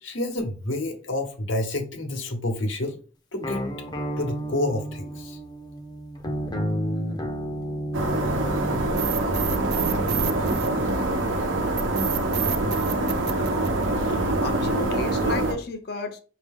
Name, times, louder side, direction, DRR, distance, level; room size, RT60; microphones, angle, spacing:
voice 1, 0.0-3.0 3.3-3.6 4.2-5.4, left 1 dB, 80° left, 1.0 m, -29 dB
sound 1, 3.4-10.9, equal, 20° left, 0.6 m, -32 dB
sound 2, 7.9-15.5, right 2 dB, 85° right, 0.9 m, -25 dB
sound 3, 9.0-11.2 11.8-14.2, right 8 dB, 55° right, 0.5 m, -30 dB
voice 2, 14.1-16.2, left 3 dB, 55° left, 0.7 m, -34 dB
5.1 x 2.8 x 3.6 m
head